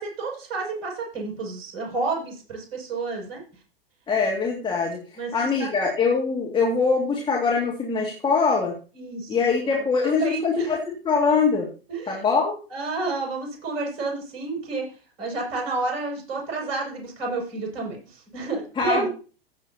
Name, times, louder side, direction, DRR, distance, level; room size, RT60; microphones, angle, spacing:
voice 1, 0.0-3.4 5.2-5.7 8.9-9.4 9.7-10.8 11.9-12.2 12.7-14.9 15.2-19.1, right 3 dB, 40° right, 0 dB, 6.7 m, -30 dB
voice 2, 4.1-5.0 5.3-8.7 9.3-10.8 11.0-11.7 12.1-12.6 18.8-19.1, left 5 dB, 15° left, -2 dB, 2.3 m, -23 dB
15.5 x 8.0 x 2.9 m, 0.36 s
figure-of-eight pair, 95°, 30 cm